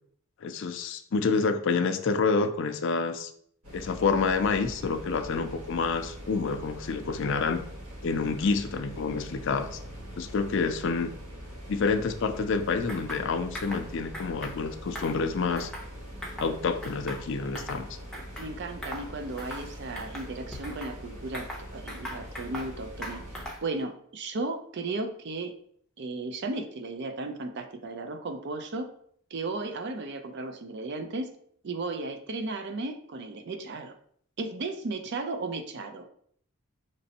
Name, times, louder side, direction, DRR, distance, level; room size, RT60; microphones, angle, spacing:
voice 1, 0.4-3.3 3.7-7.6 8.0-9.8 10.2-11.1 11.7-15.7 16.4-17.9, left 4 dB, 55° left, 8 dB, 0.4 m, -28 dB
sound 1, 3.6-23.5, equal, 90° right, 1.2 m, -43 dB
sound 2, 12.9-13.2 13.5-13.8 14.1-14.6 14.9-15.9 16.2-16.5 16.8-17.8 18.1-18.5 18.8-19.1 19.4-19.7 20.0-20.9 21.3-22.7 23.0-23.7, equal, 5° left, 0.6 m, -40 dB
voice 2, 18.4-23.2 23.6-25.5 26.0-28.9 29.3-31.3 31.6-33.9 34.4-36.1, right 3 dB, 50° right, 7 dB, 0.5 m, -35 dB
5.3 x 3.1 x 2.8 m, 0.63 s
head